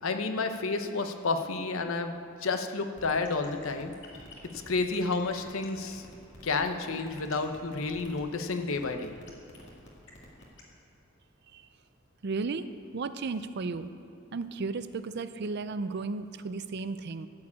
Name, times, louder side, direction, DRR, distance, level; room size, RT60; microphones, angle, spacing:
voice 1, 0.0-2.1 2.4-3.9 4.7-6.0 6.4-9.1, left 3 dB, 70° left, 6 dB, 0.8 m, -30 dB
sound 1, 3.0-10.6, left 2 dB, 55° left, 2.2 m, -50 dB
voice 2, 12.2-12.7 12.9-13.9 14.3-17.3, right 4 dB, 50° right, 12 dB, 0.4 m, -34 dB
14.5 x 4.8 x 8.5 m, 2.6 s
head